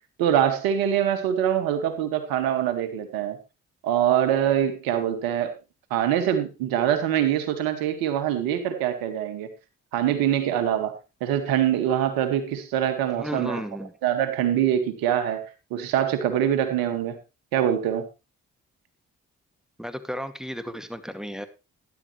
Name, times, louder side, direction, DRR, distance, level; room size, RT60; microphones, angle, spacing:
voice 1, 0.2-3.4 3.8-5.5 5.9-9.5 9.9-10.9 11.2-13.6 14.0-15.4 15.7-17.2 17.5-18.0, right 10 dB, 85° right, 1.9 m, -24 dB
voice 2, 13.1-13.9 19.8-21.5, equal, ahead, 2.2 m, -33 dB
12.5 x 11.0 x 3.2 m
hypercardioid pair, 45°, 34 cm